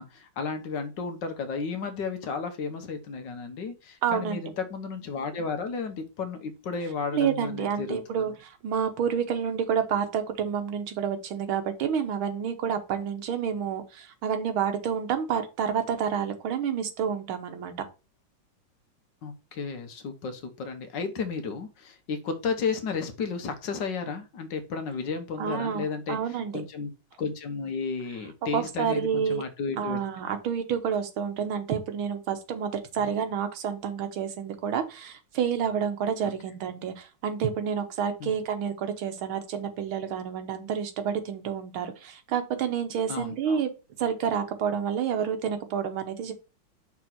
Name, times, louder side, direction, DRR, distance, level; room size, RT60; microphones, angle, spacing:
voice 1, 0.0-8.3 19.2-26.9 27.2-30.0 33.0-33.1 38.2-38.3 43.1-43.6, left 5 dB, 65° left, 7 dB, 1.5 m, -33 dB
voice 2, 4.0-4.4 7.1-17.8 25.4-26.6 28.5-29.4 29.8-43.7 44.0-46.3, right 7 dB, 80° right, 7 dB, 1.9 m, -29 dB
5.8 x 3.6 x 5.8 m, 0.30 s
omnidirectional pair, 2.3 m